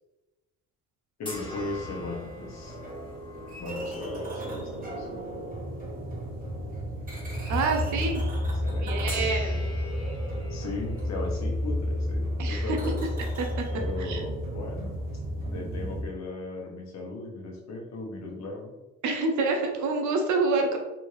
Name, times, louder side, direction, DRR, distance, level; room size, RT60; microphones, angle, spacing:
voice 1, 1.2-2.8 3.6-5.6 7.9-9.1 10.5-13.0 13.7-14.9 15.5-18.7, left 2 dB, 65° left, -1 dB, 1.0 m, -37 dB
sound 1, 1.3-4.8 5.3-5.5 9.1-15.5, left 2 dB, 15° left, 1.3 m, -44 dB
sound 2, 1.3-16.0, equal, 30° right, 1.2 m, -32 dB
voice 2, 7.5-8.2 8.8-9.7 12.4-12.8 13.4-13.5 14.0-14.2 19.0-20.8, right 3 dB, 75° right, 3 dB, 0.7 m, -27 dB
3.5 x 2.5 x 3.2 m, 1.1 s
cardioid pair, 90°, 30 cm